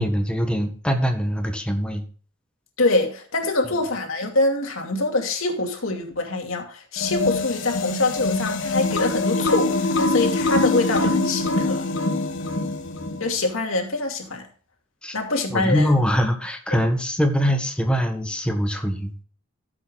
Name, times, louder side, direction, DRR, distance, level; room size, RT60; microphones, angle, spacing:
voice 1, 0.0-2.0 15.0-15.1 15.5-19.1, equal, 5° left, 1.5 m, -23 dB
voice 2, 2.8-11.8 13.2-14.5 15.1-15.9, left 2 dB, 90° left, 2.5 m, -24 dB
sound 1, 7.0-13.3, left 2 dB, 65° left, 1.3 m, -24 dB
14.5 x 7.7 x 2.5 m
head